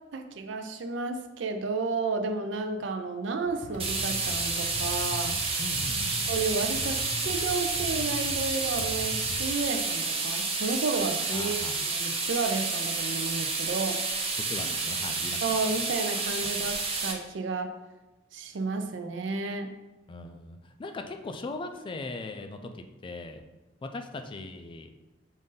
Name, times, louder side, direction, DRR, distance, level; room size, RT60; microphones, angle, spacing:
voice 1, 0.1-5.4 6.3-14.0 15.4-17.7 18.3-19.7, right 4 dB, 70° right, 7 dB, 0.5 m, -32 dB
sound 1, 3.4-9.4, left 1 dB, 75° left, 0.8 m, -40 dB
sound 2, 3.8-17.1, right 4 dB, 30° right, 0.7 m, -30 dB
voice 2, 5.6-6.2 11.3-11.8 14.5-15.6 16.4-16.6 20.1-23.4 23.8-24.9, left 2 dB, 25° left, 6 dB, 0.3 m, -39 dB
5.2 x 2.6 x 3.7 m, 1.1 s
head